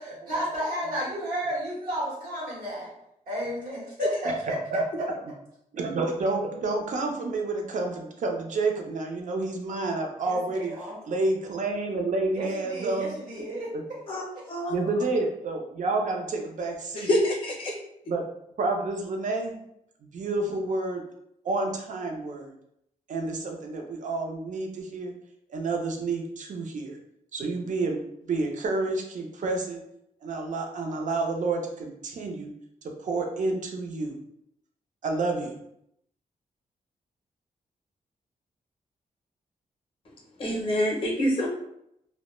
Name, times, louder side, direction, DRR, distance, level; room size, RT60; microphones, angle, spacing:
voice 1, 0.0-2.9 3.3-4.5 10.3-11.0 12.3-13.7, equal, 85° right, -7 dB, 0.9 m, -32 dB
voice 2, 5.7-13.2 13.7-13.8 14.7-17.1 18.1-18.2 18.6-19.5 20.1-21.0 21.4-22.5 23.1-25.1 25.5-27.0 27.3-28.0 28.3-29.8 30.2-32.5 33.0-34.2 35.0-35.6, right 3 dB, 60° right, 2 dB, 0.5 m, -29 dB
voice 3, 14.5-14.8 17.0-17.7 40.4-41.5, equal, 40° left, -2 dB, 0.6 m, -26 dB
2.1 x 2.0 x 3.0 m, 0.77 s
wide cardioid pair, 110°, 15 cm